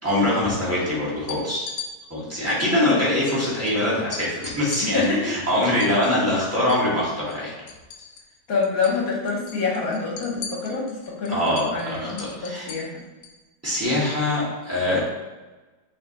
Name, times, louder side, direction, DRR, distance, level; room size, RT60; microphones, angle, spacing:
voice 1, 0.0-1.7 2.1-7.5 11.3-12.7 13.6-15.0, left 1 dB, 10° right, -7 dB, 1.1 m, -23 dB
sound 1, 1.2-1.9 3.3-3.4 3.7-3.8 4.1-6.9 7.2-8.4 8.6-9.0 9.3-13.4, left 6 dB, 75° left, 1.1 m, -39 dB
voice 2, 4.8-5.3 8.5-11.4 11.7-12.9, left 4 dB, 60° left, -2 dB, 1.2 m, -26 dB
5.5 x 2.9 x 2.9 m, 1.2 s
omnidirectional pair, 1.9 m